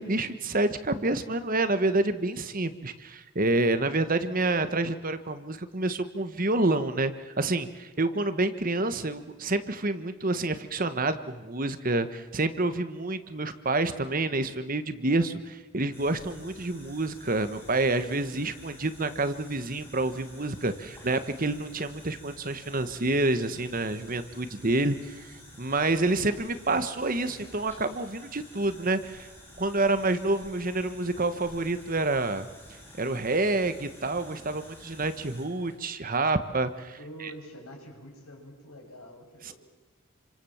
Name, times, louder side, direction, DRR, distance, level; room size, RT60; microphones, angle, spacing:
voice 1, 0.0-25.3 25.6-29.3 29.6-32.5 33.0-37.3 39.5-39.6, right 2 dB, 40° right, 11 dB, 1.3 m, -28 dB
sound 1, 15.9-35.8, left 1 dB, 10° left, 5.8 m, -50 dB
voice 2, 37.0-39.5, equal, 75° left, 1 dB, 7.1 m, -46 dB
28.0 x 25.5 x 7.2 m, 1.2 s
head